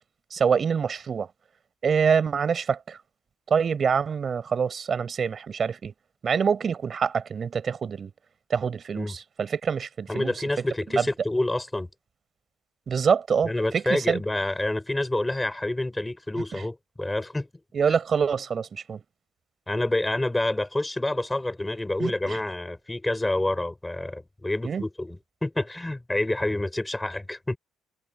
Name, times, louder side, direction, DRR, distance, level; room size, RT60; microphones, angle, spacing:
voice 1, 0.3-1.3 1.8-3.0 3.5-5.9 6.2-8.1 8.5-10.3 10.9-11.0 12.9-14.2 16.4-16.6 17.7-19.0 22.0-22.4 24.6-24.8, right 6 dB, 45° right, 5.4 m, -25 dB
voice 2, 10.1-11.9 13.4-17.5 19.7-27.6, left 1 dB, 10° left, 5.8 m, -28 dB
supercardioid pair, 70°, 0 cm